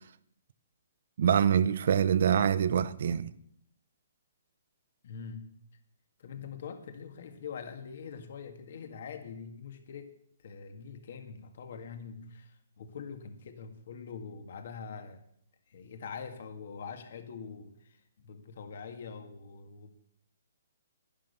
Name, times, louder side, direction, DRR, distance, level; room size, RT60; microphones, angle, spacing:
voice 1, 1.2-3.3, right 8 dB, 60° right, 0.7 m, -25 dB
voice 2, 5.0-5.5 6.2-15.2 15.7-20.0, left 6 dB, 60° left, 1.9 m, -44 dB
11.0 x 10.5 x 6.9 m
hypercardioid pair, 150°, 0 cm